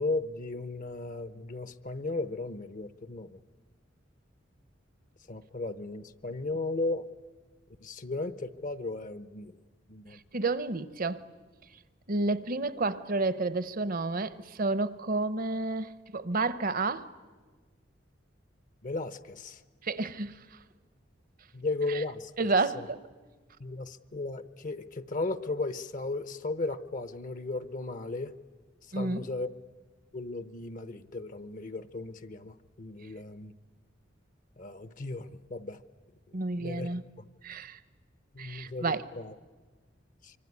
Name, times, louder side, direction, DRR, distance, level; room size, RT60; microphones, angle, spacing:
voice 1, 0.0-3.4 5.3-7.1 7.8-9.6 9.9-10.2 18.8-19.6 21.5-22.9 23.6-28.3 28.9-29.5 30.1-33.5 34.6-35.8 36.3-36.9 37.2-37.3 38.3-39.3 40.2-40.3, left 2 dB, 45° left, 13 dB, 0.8 m, -36 dB
voice 2, 10.3-11.2 12.1-17.1 19.8-20.3 22.4-23.0 28.9-29.2 36.3-37.0 37.4-37.8 38.4-39.0, right 3 dB, 50° right, 15 dB, 0.9 m, -30 dB
25.0 x 24.5 x 9.8 m, 1.4 s
head